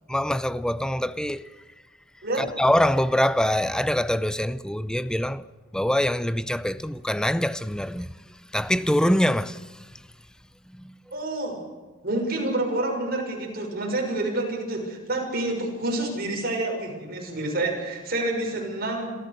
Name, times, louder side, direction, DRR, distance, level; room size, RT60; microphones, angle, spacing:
voice 1, 0.1-1.5 2.4-5.4 5.7-8.1 8.5-9.6 10.7-10.9, equal, 5° left, 0.6 m, -24 dB
voice 2, 11.1-11.6 12.0-19.1, right 2 dB, 50° right, 6.2 m, -28 dB
27.0 x 14.5 x 6.8 m
head